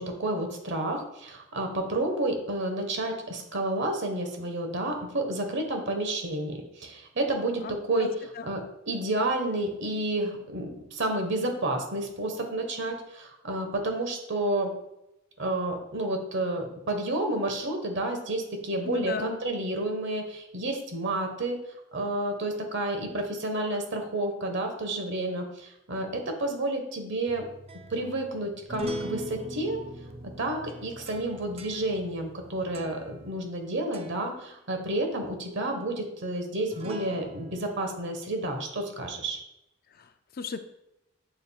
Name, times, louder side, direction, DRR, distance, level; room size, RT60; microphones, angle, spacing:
voice 1, 0.0-8.1 8.5-14.7 15.4-21.6 21.9-27.4 27.9-29.8 30.2-39.4, right 1 dB, 60° right, 4 dB, 1.3 m, -30 dB
voice 2, 18.8-19.3 39.9-40.6, left 5 dB, 45° left, 9 dB, 0.4 m, -35 dB
sound 1, 27.3-33.6 33.9-34.3 36.7-37.7, right 1 dB, 30° right, 0.5 m, -41 dB
7.7 x 7.1 x 2.4 m, 0.84 s
head